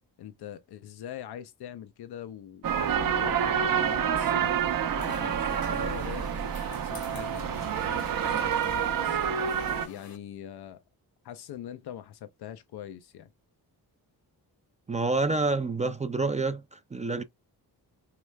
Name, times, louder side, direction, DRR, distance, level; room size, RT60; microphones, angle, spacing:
voice 1, 0.2-10.8 11.2-13.3, left 10 dB, 90° left, 0.6 m, -43 dB
sound 1, 2.6-9.9, right 8 dB, 60° right, 0.7 m, -28 dB
sound 2, 5.0-10.2, left 6 dB, 70° left, 1.2 m, -49 dB
voice 2, 14.9-17.2, right 3 dB, 20° right, 0.4 m, -28 dB
4.8 x 3.2 x 2.2 m
cardioid pair, 105°, 38 cm